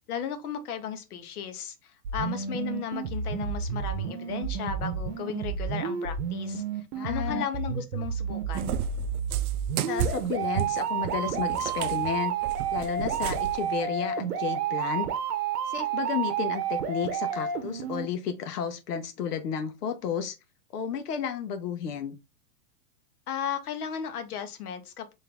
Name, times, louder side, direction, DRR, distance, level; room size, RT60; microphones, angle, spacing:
voice 1, 0.1-6.6 7.0-8.8 23.3-25.1, left 8 dB, 75° left, 1.1 m, -35 dB
sound 1, 2.0-18.1, right 7 dB, 90° right, 1.0 m, -31 dB
voice 2, 6.9-7.5 9.9-12.3 12.7-15.1 15.7-20.4 20.7-22.2, left 7 dB, 90° left, 0.9 m, -32 dB
Cat, 8.6-13.7, right 9 dB, 70° right, 0.6 m, -33 dB
3.9 x 2.7 x 3.4 m
supercardioid pair, 150°, 46 cm